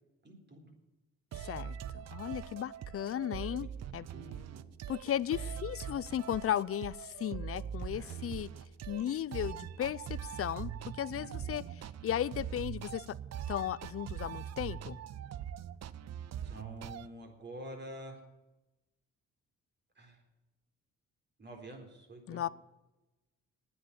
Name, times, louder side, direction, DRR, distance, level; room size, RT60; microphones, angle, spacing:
voice 1, 0.2-0.7 3.6-3.7 4.1-4.7 7.9-8.3 11.1-11.7 16.4-18.2 20.0-20.2 21.4-22.4, right 1 dB, 35° right, 3 dB, 4.1 m, -48 dB
voice 2, 1.3-3.7 3.9-4.1 4.9-8.5 8.9-11.6 12.0-13.2 13.5-15.0 22.3-22.5, left 11 dB, 50° left, 20 dB, 0.5 m, -35 dB
sound 1, 1.3-17.1, right 9 dB, 60° right, 0.7 m, -42 dB
10.0 x 9.6 x 10.0 m, 1.0 s
cardioid pair, 90°, 30 cm